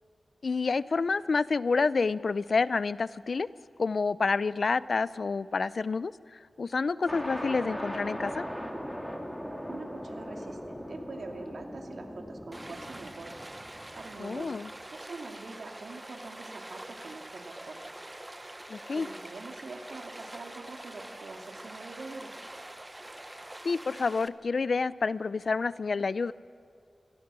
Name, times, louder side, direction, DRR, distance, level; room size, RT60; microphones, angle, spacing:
voice 1, 0.4-3.5 3.8-8.5 14.2-14.7 18.7-19.1 23.6-26.3, left 4 dB, 60° left, 17 dB, 0.6 m, -28 dB
sound 1, 7.1-14.6, equal, 5° left, 2.7 m, -39 dB
voice 2, 9.7-13.4 13.9-14.6 14.9-18.0 18.9-22.3, right 3 dB, 75° right, 3 dB, 2.5 m, -44 dB
Stream, 12.5-24.3, right 1 dB, 15° right, 0.9 m, -45 dB
27.5 x 21.0 x 6.2 m, 2.5 s
wide cardioid pair, 100°, 0 cm